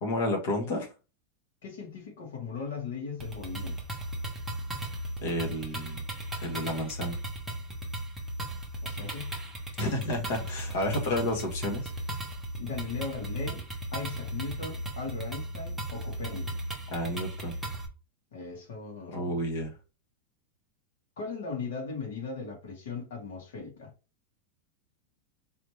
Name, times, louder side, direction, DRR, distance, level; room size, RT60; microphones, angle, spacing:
voice 1, 0.0-0.9 5.2-6.0 6.4-7.2 9.8-11.9 16.9-17.6 19.1-19.8, left 1 dB, 50° left, 1.5 m, -31 dB
voice 2, 1.6-3.8 8.8-9.4 12.6-13.6 13.9-16.6 18.3-19.4 21.2-23.9, left 5 dB, 75° left, 2.3 m, -38 dB
sound 1, 3.2-17.9, right 1 dB, 5° right, 0.9 m, -36 dB
4.0 x 3.1 x 3.3 m
supercardioid pair, 180°, 0 cm